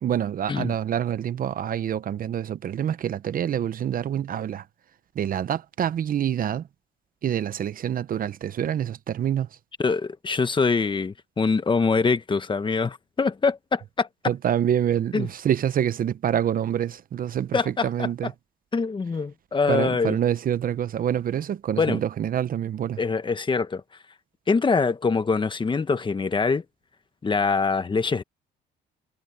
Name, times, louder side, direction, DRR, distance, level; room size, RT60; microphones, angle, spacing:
voice 1, 0.0-4.7 5.1-6.7 7.2-9.5 14.3-18.3 19.7-23.0, right 10 dB, 50° right, 0.9 m, -26 dB
voice 2, 9.8-14.1 15.1-15.3 17.5-18.1 18.7-20.2 21.8-22.0 23.0-23.8 24.5-26.6 27.2-28.2, left 4 dB, 25° left, 1.4 m, -24 dB
cardioid pair, 100°, 19 cm